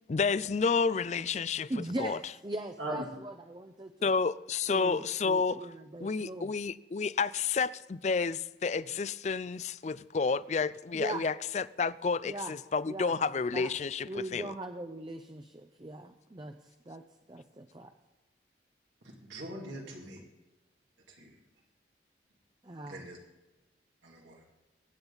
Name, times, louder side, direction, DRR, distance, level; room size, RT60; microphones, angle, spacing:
voice 1, 0.1-2.2 4.0-5.7 6.0-14.5, left 5 dB, 40° left, 0.4 m, -30 dB
voice 2, 1.7-4.1 4.7-6.5 10.9-11.2 12.2-12.5 12.8-13.1 13.5-13.7 14.1-17.9 22.6-23.0, right 1 dB, 25° right, 0.6 m, -40 dB
voice 3, 19.2-20.2 21.1-21.3 22.8-23.2 24.0-24.4, right 1 dB, 85° right, 2.4 m, -40 dB
22.0 x 8.9 x 4.0 m
head